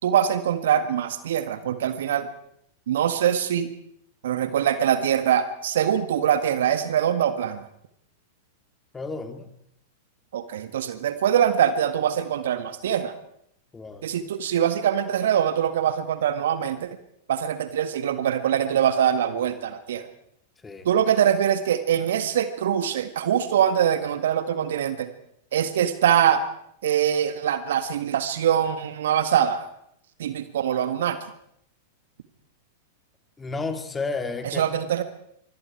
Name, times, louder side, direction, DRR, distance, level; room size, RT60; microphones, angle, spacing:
voice 1, 0.0-2.3 2.9-3.7 4.2-7.7 10.3-13.1 14.0-16.9 17.3-20.1 20.9-25.1 25.5-26.4 26.8-29.7 30.2-31.2 34.4-35.0, right 9 dB, 60° right, 11 dB, 1.7 m, -23 dB
voice 2, 8.9-9.5 13.7-14.0 20.6-20.9 33.4-34.6, left 3 dB, 15° left, 7 dB, 3.1 m, -31 dB
26.0 x 24.5 x 4.7 m, 0.71 s
figure-of-eight pair, 95°, 0 cm